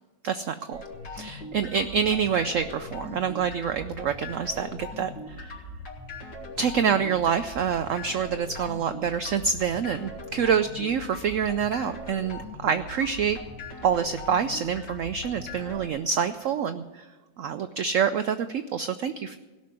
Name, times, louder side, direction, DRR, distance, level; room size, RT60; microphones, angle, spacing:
voice 1, 0.2-0.8 1.1-5.5 6.6-13.4 13.8-17.0 17.4-19.4, right 7 dB, 80° right, 10 dB, 0.7 m, -27 dB
sound 1, 0.7-15.9, left 2 dB, 85° left, 2.8 m, -40 dB
17.0 x 6.3 x 9.5 m, 1.3 s
omnidirectional pair, 1.9 m